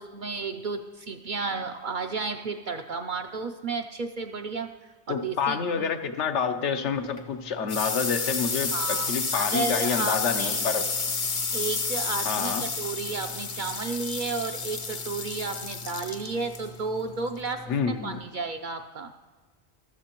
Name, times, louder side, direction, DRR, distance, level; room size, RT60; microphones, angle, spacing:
voice 1, 0.0-5.9 8.7-10.6 11.5-19.1, right 4 dB, 55° right, 6 dB, 0.6 m, -33 dB
voice 2, 5.1-10.9 12.2-12.7 17.7-18.2, left 6 dB, 80° left, 7 dB, 1.1 m, -28 dB
sound 1, 7.0-18.2, left 4 dB, 40° left, 0.6 m, -31 dB
13.5 x 13.5 x 3.0 m, 1.4 s
omnidirectional pair, 1.2 m